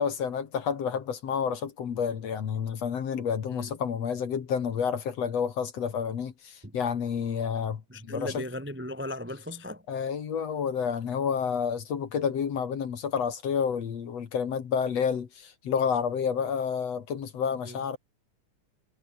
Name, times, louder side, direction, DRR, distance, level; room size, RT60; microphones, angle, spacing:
voice 1, 0.0-8.4 9.9-18.0, left 7 dB, 55° left, 2.9 m, -29 dB
voice 2, 7.9-9.8 17.6-17.8, left 1 dB, 15° right, 0.3 m, -37 dB
omnidirectional pair, 3.7 m